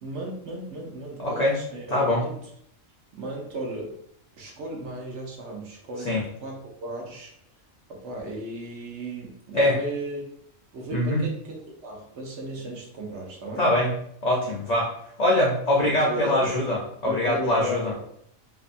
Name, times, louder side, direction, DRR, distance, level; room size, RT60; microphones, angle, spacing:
voice 1, 0.0-2.4 3.2-4.0 4.3-7.3 7.9-10.3 10.7-13.7 15.8-16.5 17.1-18.0, right 1 dB, 65° right, -1 dB, 0.9 m, -35 dB
voice 2, 1.2-1.5 1.9-2.2 6.1-6.2 9.5-9.8 10.9-11.2 13.6-13.9 14.2-14.9 15.2-17.9, left 1 dB, 65° left, -4 dB, 0.4 m, -23 dB
2.7 x 2.3 x 2.5 m, 0.68 s
omnidirectional pair, 1.4 m